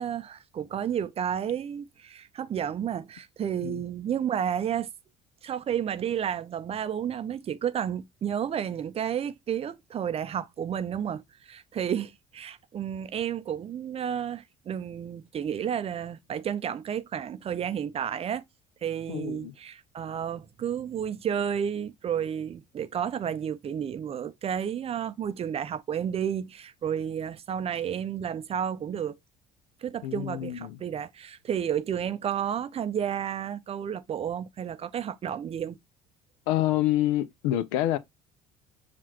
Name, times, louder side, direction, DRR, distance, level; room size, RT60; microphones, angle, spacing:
voice 1, 0.0-4.9 5.4-18.4 18.8-29.2 29.8-35.8, right 9 dB, 35° right, 0.5 m, -31 dB
voice 2, 19.1-19.5 30.0-30.8 36.5-38.0, left 14 dB, 65° left, 0.5 m, -27 dB
7.2 x 2.4 x 2.9 m
figure-of-eight pair, 55°, 18 cm